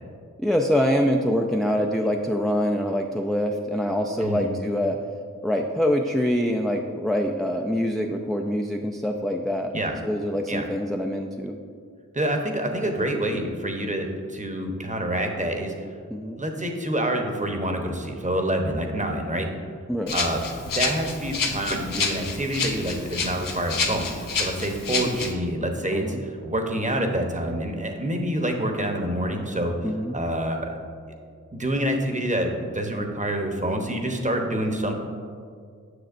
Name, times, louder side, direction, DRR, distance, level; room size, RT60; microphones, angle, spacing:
voice 1, 0.4-5.0 5.4-9.7 10.0-11.6 16.1-16.4 19.9-20.2 24.9-25.2 25.9-26.2 29.8-30.2, equal, ahead, 2 dB, 0.4 m, -25 dB
voice 2, 12.1-15.9 16.3-19.5 20.1-29.7 30.1-30.7 31.5-34.9, right 1 dB, 25° right, 3 dB, 0.9 m, -27 dB
Rattle (instrument), 20.1-25.3, left 4 dB, 85° left, 0.6 m, -29 dB
7.8 x 6.1 x 2.5 m, 2.1 s
cardioid pair, 45°, 32 cm